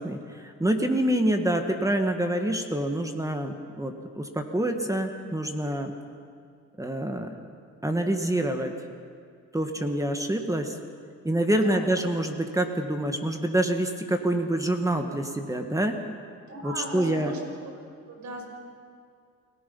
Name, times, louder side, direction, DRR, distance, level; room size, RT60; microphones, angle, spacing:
voice 1, 0.0-5.9 6.8-7.3 7.8-8.7 9.5-10.8 11.2-16.0 16.6-17.3, right 1 dB, 10° right, 5 dB, 1.7 m, -26 dB
voice 2, 11.6-12.0 16.5-17.7 18.1-18.4, right 1 dB, 65° right, 1 dB, 5.8 m, -38 dB
29.0 x 17.5 x 5.5 m, 2.3 s
cardioid pair, 90°, 30 cm